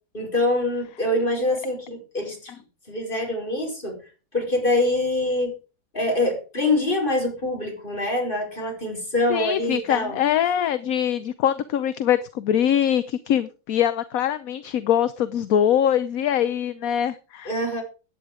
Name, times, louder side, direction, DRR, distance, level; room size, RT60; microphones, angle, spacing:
voice 1, 0.1-2.5 2.9-4.0 4.3-5.5 5.9-10.2 17.5-17.8, left 2 dB, 30° left, 1 dB, 5.4 m, -24 dB
voice 2, 9.3-17.5, left 10 dB, 65° left, 14 dB, 1.1 m, -23 dB
14.5 x 9.6 x 5.0 m, 0.33 s
omnidirectional pair, 1.7 m